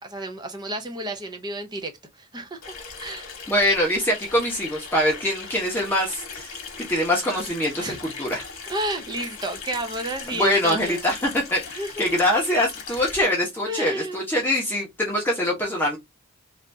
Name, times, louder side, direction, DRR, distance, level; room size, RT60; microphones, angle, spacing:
voice 1, 0.0-1.9 2.2-2.6 3.0-3.3 7.8-8.0 8.7-11.0 11.7-11.9 13.7-14.2, right 1 dB, 20° right, 0.6 m, -31 dB
Water tap faucet / Sink (filling or washing), 2.6-13.3, left 5 dB, 65° left, 1.1 m, -39 dB
voice 2, 3.5-8.4 10.3-16.0, left 1 dB, 10° left, 0.9 m, -24 dB
3.3 x 2.5 x 2.6 m
head